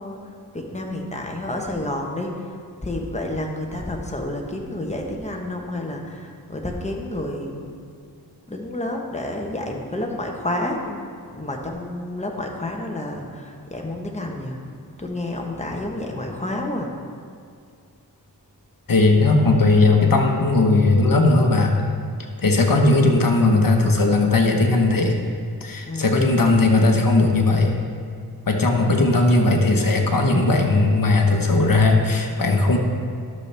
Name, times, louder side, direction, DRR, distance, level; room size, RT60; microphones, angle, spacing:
voice 1, 0.0-7.7 8.5-14.6 15.0-16.9 25.9-26.2, left 1 dB, 20° left, 1 dB, 1.1 m, -30 dB
voice 2, 18.9-21.8 22.4-25.1 25.6-27.8 28.5-32.8, left 2 dB, 60° left, 2 dB, 1.1 m, -17 dB
11.5 x 6.8 x 3.4 m, 2.3 s
wide cardioid pair, 65°, 38 cm